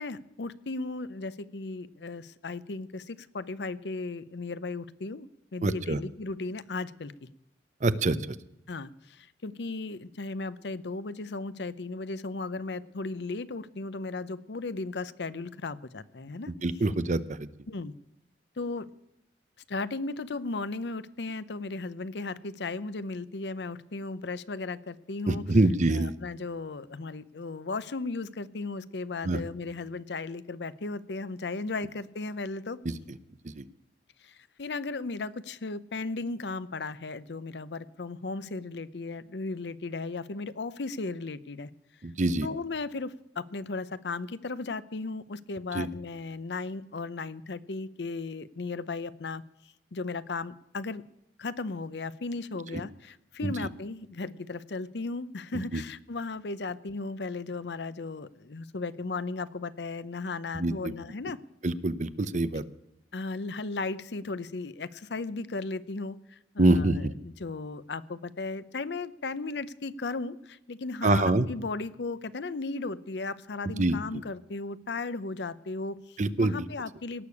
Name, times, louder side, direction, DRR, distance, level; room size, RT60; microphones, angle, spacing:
voice 1, 0.0-7.3 8.7-16.5 17.7-17.9 18.6-18.9 19.7-25.5 25.9-32.8 34.2-41.7 42.4-49.4 49.9-51.0 51.4-61.4 63.1-77.3, left 3 dB, 70° left, 16 dB, 0.7 m, -36 dB
voice 2, 5.6-6.0 7.8-8.2 16.6-17.5 25.3-26.1 29.2-29.4 32.9-33.0 33.6-33.7 42.0-42.5 45.7-45.9 52.7-52.8 53.4-53.5 55.5-55.8 60.6-60.9 61.6-62.6 66.6-67.1 71.0-71.5 73.8-74.0 76.2-76.5, right 2 dB, 45° right, 14 dB, 0.7 m, -25 dB
18.0 x 6.7 x 8.4 m, 0.84 s
head